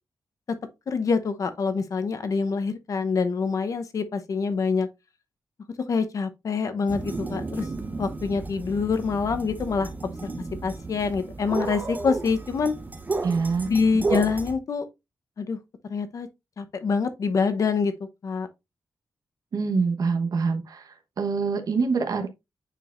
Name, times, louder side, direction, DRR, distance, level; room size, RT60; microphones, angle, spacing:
voice 1, 0.9-4.9 5.9-7.7 8.0-9.9 10.2-10.3 10.6-12.7 13.7-14.9 15.4-15.6 15.9-16.3 16.6-17.9 18.2-18.5, left 5 dB, 50° left, 0.8 m, -25 dB
sound 1, 6.9-14.5, right 3 dB, 25° right, 0.9 m, -33 dB
voice 2, 13.2-13.7 19.5-20.8 21.2-22.3, right 4 dB, 60° right, 1.1 m, -25 dB
9.0 x 4.6 x 2.5 m
wide cardioid pair, 145°, 7 cm